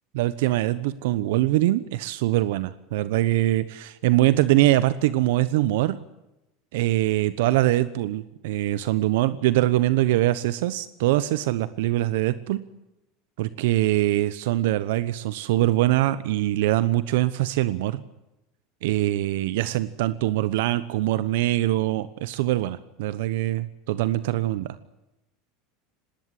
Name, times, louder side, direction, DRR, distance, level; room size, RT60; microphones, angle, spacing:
voice 1, 0.1-6.0 6.7-12.7 13.4-18.0 18.8-24.8, right 15 dB, 80° right, 15 dB, 1.0 m, -23 dB
19.5 x 18.5 x 9.9 m, 0.90 s
supercardioid pair, 125°, 0 cm